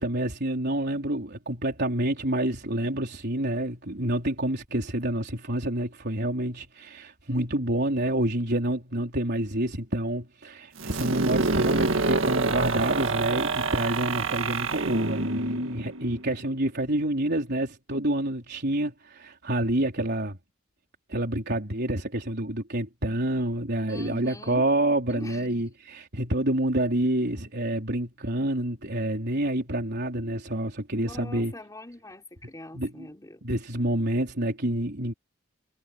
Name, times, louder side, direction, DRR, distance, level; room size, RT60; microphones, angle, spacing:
voice 1, 0.0-20.4 21.1-31.5 32.7-33.1 33.4-35.1, right 1 dB, 55° right, 4.3 m, -28 dB
sound 1, 10.8-16.5, right 3 dB, 85° right, 1.8 m, -27 dB
voice 2, 23.9-24.7 25.1-25.6 31.0-33.5, left 1 dB, 20° left, 4.2 m, -43 dB
head